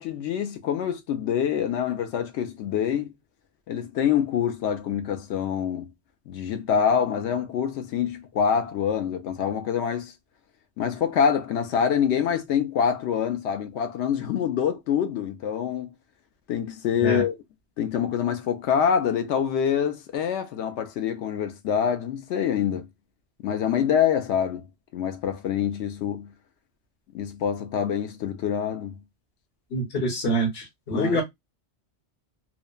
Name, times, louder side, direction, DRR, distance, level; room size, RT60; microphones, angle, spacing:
voice 1, 0.0-3.1 3.7-5.9 6.3-10.1 10.8-15.9 16.5-17.4 17.8-22.9 23.4-24.7 24.9-26.3 27.1-28.9 30.9-31.2, left 8 dB, 90° left, 0.9 m, -25 dB
voice 2, 29.7-31.2, right 1 dB, 65° left, 1.3 m, -26 dB
3.0 x 2.1 x 2.3 m
omnidirectional pair, 1.1 m